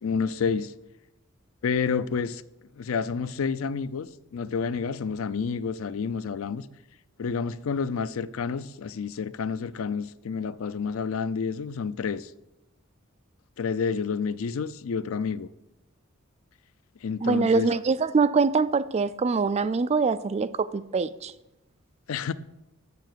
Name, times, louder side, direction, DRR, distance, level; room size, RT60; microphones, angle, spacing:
voice 1, 0.0-0.7 1.6-2.4 2.7-6.7 7.2-12.3 13.6-15.5 17.0-17.7 22.1-22.3, left 5 dB, 80° left, 0.4 m, -29 dB
voice 2, 17.2-21.3, right 4 dB, 30° right, 0.3 m, -24 dB
6.9 x 6.6 x 7.9 m
head